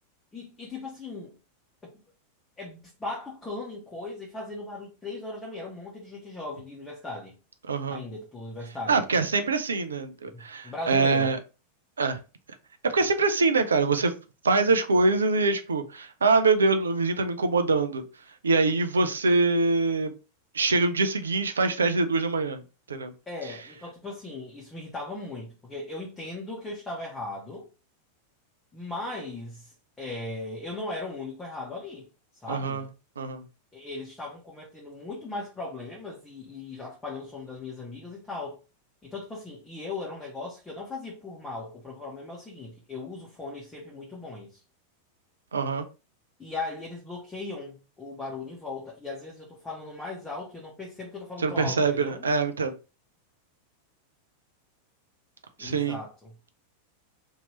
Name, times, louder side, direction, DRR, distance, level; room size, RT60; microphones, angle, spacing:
voice 1, 0.3-1.4 1.8-1.9 2.6-7.4 7.9-9.0 10.3-11.3 23.3-27.7 28.7-32.1 32.4-32.9 33.7-38.6 39.0-44.6 46.4-52.2 55.6-56.3, left 2 dB, 15° left, 1.0 m, -38 dB
voice 2, 7.7-8.0 8.9-11.4 12.0-12.2 12.8-14.1 14.4-18.0 18.4-20.1 20.5-22.6 22.9-23.1 23.4-23.6 32.5-32.8 33.2-33.4 45.5-45.9 51.4-52.7 55.6-56.0, right 3 dB, 70° right, 0.4 m, -24 dB
2.9 x 2.7 x 3.1 m
figure-of-eight pair, 90°, 0 cm